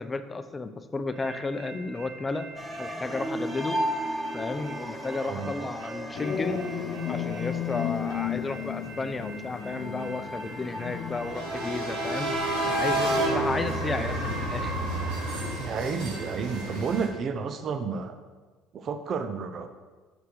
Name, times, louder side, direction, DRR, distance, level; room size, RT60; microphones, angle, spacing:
voice 1, 0.0-2.5 2.8-3.8 4.3-6.6 7.1-12.3 12.7-14.8, left 3 dB, 25° left, 10 dB, 0.6 m, -33 dB
sound 1, 1.2-17.1, right 1 dB, 80° right, 2.1 m, -33 dB
sound 2, 2.6-12.9, right 1 dB, 10° right, 1.0 m, -37 dB
voice 2, 5.2-5.7 15.6-18.2 18.7-19.7, right 5 dB, 45° right, 8 dB, 0.6 m, -31 dB
sound 3, 6.1-14.9, left 8 dB, 60° left, 0.7 m, -35 dB
6.3 x 5.7 x 6.3 m, 1.3 s
supercardioid pair, 80°, 0 cm